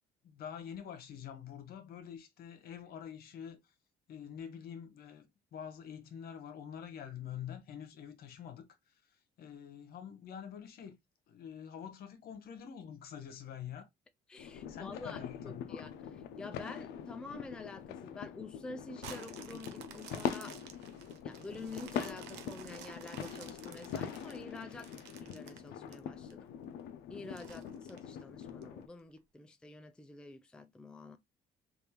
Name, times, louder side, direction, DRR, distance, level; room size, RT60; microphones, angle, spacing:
voice 1, 0.2-3.7 4.1-11.0 11.3-13.9 14.7-15.8, left 8 dB, 65° left, 0.9 m, -46 dB
voice 2, 14.3-20.6 21.2-24.9 25.2-26.5 27.1-31.2, left 3 dB, 5° left, 0.4 m, -48 dB
sound 1, 14.4-28.9, left 8 dB, 80° left, 0.5 m, -43 dB
sound 2, 19.0-26.3 26.8-26.9 27.3-28.6 29.2-29.3, right 9 dB, 85° right, 0.6 m, -52 dB
3.5 x 2.6 x 2.8 m
cardioid pair, 110°, 17 cm